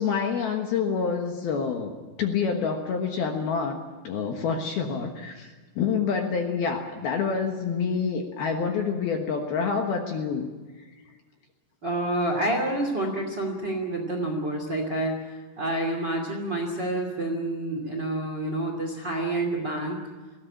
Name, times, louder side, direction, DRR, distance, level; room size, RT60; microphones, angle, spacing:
voice 1, 0.0-1.9 2.2-3.8 4.0-10.5, left 6 dB, 65° left, 3 dB, 2.8 m, -27 dB
voice 2, 11.8-20.0, right 1 dB, 30° right, 3 dB, 2.2 m, -28 dB
20.5 x 16.5 x 9.8 m, 1.3 s
omnidirectional pair, 5.7 m